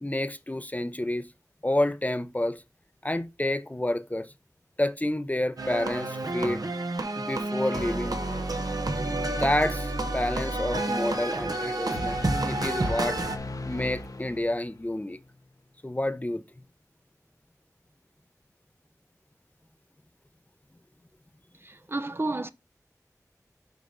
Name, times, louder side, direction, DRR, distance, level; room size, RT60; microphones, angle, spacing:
voice 1, 0.0-1.3 1.6-2.6 3.0-4.3 4.8-6.6 7.2-8.5 9.3-12.2 12.4-13.2 13.7-15.2 15.8-16.4, left 1 dB, 25° left, 0.6 m, -29 dB
sound 1, 5.6-13.4, right 2 dB, 80° right, 1.2 m, -30 dB
sound 2, 11.9-14.9, left 2 dB, 65° left, 1.0 m, -38 dB
voice 2, 21.6-22.5, right 2 dB, 40° right, 0.6 m, -31 dB
6.6 x 5.0 x 4.0 m
wide cardioid pair, 45°, 6 cm